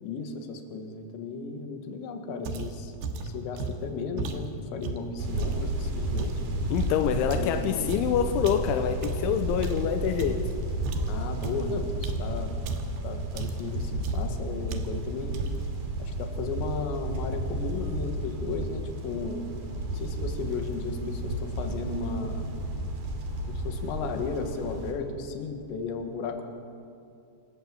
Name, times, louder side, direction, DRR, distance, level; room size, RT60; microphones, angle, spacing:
voice 1, 0.0-2.9 3.2-6.4 7.4-8.0 11.1-12.6 13.0-15.4 16.0-19.5 19.9-22.5 23.5-26.4, left 4 dB, 75° left, 5 dB, 3.8 m, -35 dB
sound 1, 2.5-5.7 6.2-10.6 10.8-13.0 13.4-13.8 14.0-14.4 14.7-15.1 15.3-15.7, right 3 dB, 70° right, 3.3 m, -36 dB
sound 2, 5.2-24.9, right 2 dB, 50° right, 3.3 m, -32 dB
voice 2, 6.7-10.5, left 9 dB, 90° left, 7 dB, 3.3 m, -26 dB
26.5 x 14.0 x 7.7 m, 2.5 s
omnidirectional pair, 5.4 m